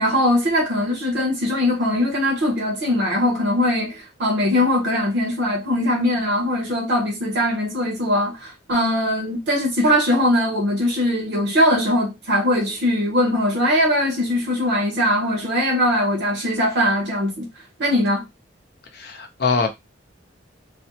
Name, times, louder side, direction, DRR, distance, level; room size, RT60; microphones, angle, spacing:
voice 1, 0.0-17.5 17.8-18.3, left 1 dB, 65° right, 0.7 m, -21 dB
voice 2, 18.9-19.7, left 4 dB, 60° left, 0.7 m, -22 dB
2.4 x 2.1 x 2.8 m
head